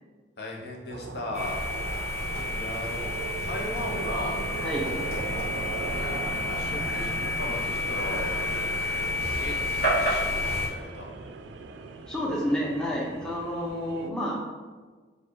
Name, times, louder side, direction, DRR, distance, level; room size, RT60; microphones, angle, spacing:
voice 1, 0.4-1.6 2.1-3.1 3.4-4.4 5.8-6.2 6.5-8.4 9.4-9.6 10.0-11.1, left 2 dB, 65° left, -1 dB, 0.7 m, -37 dB
sound 1, 0.9-14.1, right 3 dB, 85° right, 0.3 m, -38 dB
sound 2, 1.3-10.7, left 2 dB, 40° left, 1.5 m, -30 dB
voice 2, 2.1-2.4 4.5-4.9 12.1-14.4, equal, 5° left, -5 dB, 0.6 m, -30 dB
4.4 x 2.3 x 4.5 m, 1.4 s
head